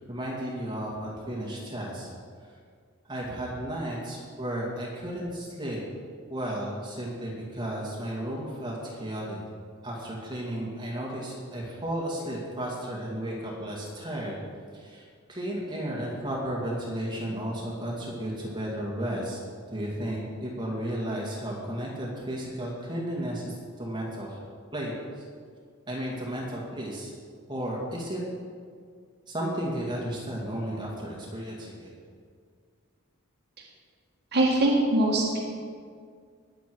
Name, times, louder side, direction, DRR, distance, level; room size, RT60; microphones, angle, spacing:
voice 1, 0.1-2.1 3.1-5.8 6.3-9.4 9.8-14.4 14.7-19.4 19.7-24.4 24.7-25.2 25.9-27.1 27.5-28.2 29.3-31.9, right 1 dB, 20° right, -4 dB, 2.2 m, -33 dB
voice 2, 34.3-35.4, right 1 dB, 50° right, -5 dB, 1.8 m, -22 dB
20.0 x 7.2 x 4.7 m, 2.1 s
head